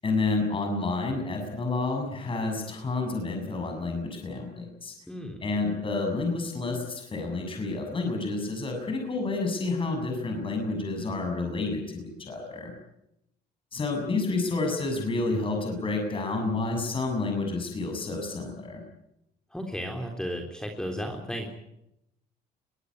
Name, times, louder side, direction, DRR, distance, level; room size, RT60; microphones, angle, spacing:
voice 1, 0.0-4.9 5.4-12.7 13.7-18.8, left 3 dB, 30° left, 3 dB, 7.0 m, -29 dB
voice 2, 5.1-5.4 19.5-21.5, equal, 5° left, 3 dB, 3.6 m, -34 dB
22.5 x 18.5 x 9.7 m, 0.82 s
cardioid pair, 110°, 17 cm